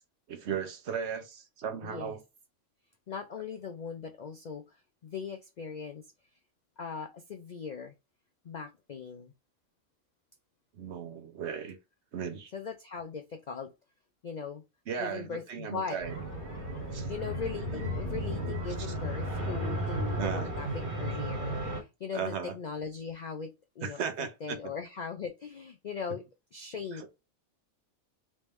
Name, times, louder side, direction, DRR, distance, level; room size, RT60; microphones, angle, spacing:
voice 1, 0.3-2.2 10.7-11.8 12.1-12.5 14.9-16.1 16.9-17.1 20.1-20.5 22.1-22.5 23.8-24.6 26.9-27.1, right 7 dB, 60° right, 0.9 m, -36 dB
voice 2, 1.8-2.2 3.1-4.8 5.0-6.0 6.8-7.9 8.4-9.3 12.5-13.7 14.2-14.6 15.0-16.0 17.1-26.2 26.5-27.1, left 6 dB, 75° left, 0.4 m, -39 dB
sound 1, 16.0-21.8, right 1 dB, 40° right, 1.5 m, -34 dB
3.5 x 3.1 x 3.0 m
omnidirectional pair, 1.4 m